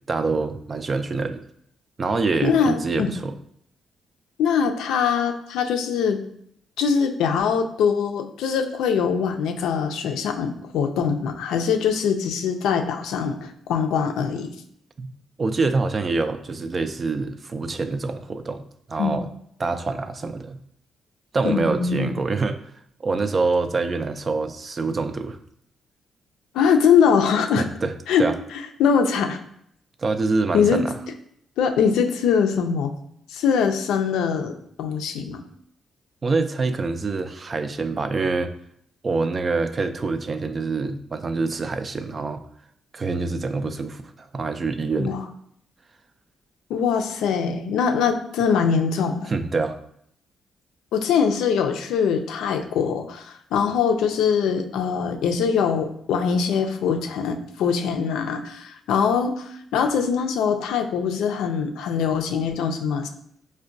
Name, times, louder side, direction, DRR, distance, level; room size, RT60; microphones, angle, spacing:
voice 1, 0.1-1.4 2.0-3.3 15.0-15.1 15.4-18.6 18.9-19.3 19.6-20.6 21.3-22.6 23.0-25.4 27.6-27.9 28.2-28.3 30.0-31.0 36.2-38.5 39.0-42.4 42.9-45.2 49.3-49.8, right 3 dB, 40° right, 10 dB, 0.3 m, -25 dB
voice 2, 2.4-3.1 4.4-6.2 6.8-14.5 19.0-19.2 21.4-22.1 26.5-27.6 28.1-29.4 30.5-30.8 31.6-32.9 33.3-34.5 34.8-35.4 45.0-45.2 46.7-49.3 50.9-63.1, left 6 dB, 85° left, 5 dB, 0.4 m, -22 dB
4.5 x 2.2 x 2.5 m, 0.70 s
supercardioid pair, 60°, 0 cm